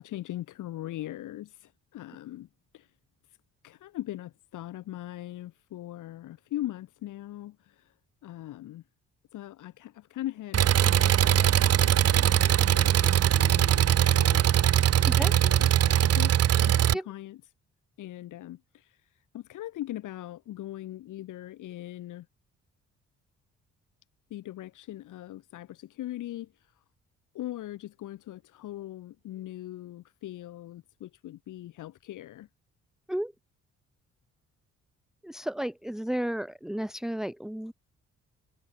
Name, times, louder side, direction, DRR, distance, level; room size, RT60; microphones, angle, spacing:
voice 1, 0.0-2.5 2.7-2.9 3.6-7.9 8.2-8.8 9.3-11.5 11.8-14.4 15.0-16.3 16.6-17.4 18.0-19.1 19.3-22.3 24.3-26.7 27.3-32.5, left 14 dB, 85° left, 6.5 m, -40 dB
Engine, 10.5-16.9, right 10 dB, 55° right, 1.0 m, -21 dB
voice 2, 15.0-15.4 16.9-17.1 33.1-33.3 35.2-37.7, equal, ahead, 1.3 m, -33 dB
cardioid pair, 90°, 30 cm